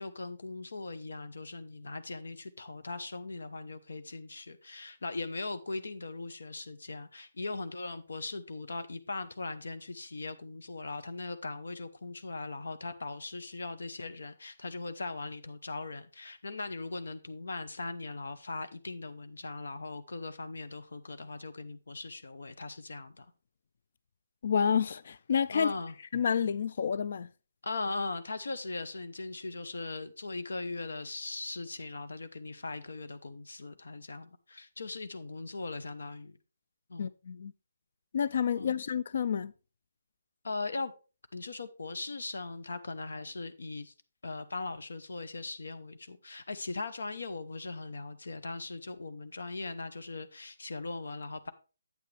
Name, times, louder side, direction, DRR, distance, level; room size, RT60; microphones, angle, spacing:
voice 1, 0.0-23.3 25.5-25.9 27.6-36.4 36.9-37.1 38.5-38.8 40.4-40.9 41.3-43.9 44.2-51.5, left 3 dB, 90° left, 0.9 m, -39 dB
voice 2, 24.4-25.7 26.1-27.3 37.0-37.5 38.1-39.5, left 7 dB, 50° left, 0.3 m, -29 dB
8.3 x 8.3 x 3.3 m
hypercardioid pair, 170°, 0 cm